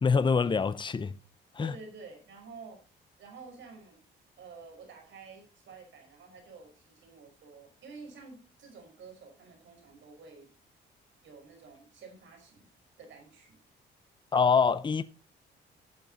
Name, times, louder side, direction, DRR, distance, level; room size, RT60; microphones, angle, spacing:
voice 1, 0.0-1.1 1.6-1.7 14.3-15.0, left 5 dB, 25° left, 0.7 m, -25 dB
voice 2, 1.6-2.8 3.2-4.0 4.4-10.5 11.2-12.7 13.0-13.6, right 4 dB, 70° right, 5.5 m, -50 dB
12.0 x 7.8 x 4.1 m
cardioid pair, 90°, 20 cm